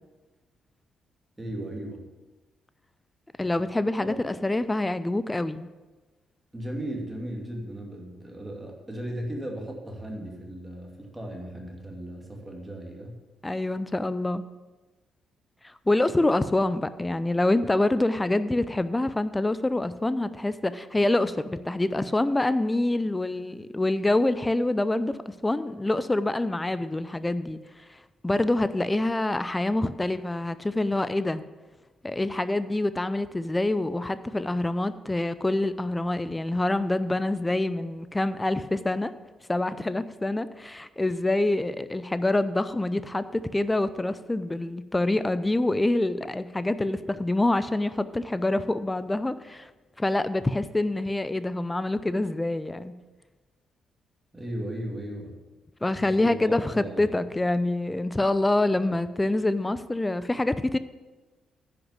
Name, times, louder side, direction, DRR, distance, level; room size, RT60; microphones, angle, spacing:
voice 1, 1.4-2.0 4.0-4.3 6.5-13.1 54.3-55.3 56.2-57.2, right 1 dB, 15° right, 0 dB, 2.7 m, -36 dB
voice 2, 3.4-5.7 13.4-14.4 15.6-27.6 27.9-31.4 32.0-39.1 39.5-49.7 50.0-52.9 55.8-60.8, left 2 dB, 15° left, 14 dB, 0.5 m, -26 dB
10.0 x 6.0 x 7.2 m, 1.2 s
figure-of-eight pair, 40°, 0 cm